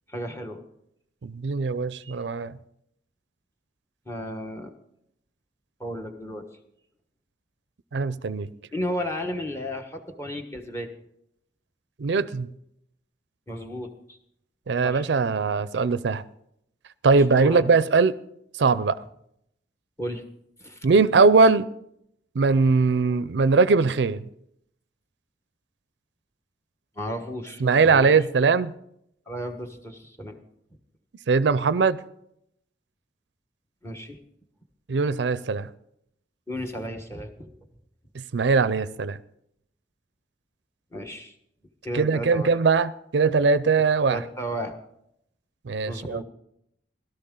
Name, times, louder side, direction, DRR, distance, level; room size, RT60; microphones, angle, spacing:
voice 1, 0.1-0.6 2.0-2.1 4.0-4.7 5.8-6.5 8.7-10.9 13.5-14.2 14.8-15.1 17.3-17.7 20.0-20.2 20.6-20.9 26.9-28.1 29.3-30.4 33.8-34.2 36.5-37.5 40.9-41.3 41.8-42.5 44.1-44.7 45.9-46.2, equal, 15° left, 1.3 m, -33 dB
voice 2, 1.2-2.5 7.9-8.5 12.0-12.5 14.7-16.2 17.0-18.2 18.6-19.0 20.8-21.7 22.4-24.2 27.6-28.7 31.3-32.0 34.9-35.7 38.1-39.2 41.9-44.2 45.7-46.2, right 4 dB, 75° right, 0.5 m, -21 dB
17.0 x 12.5 x 3.8 m
head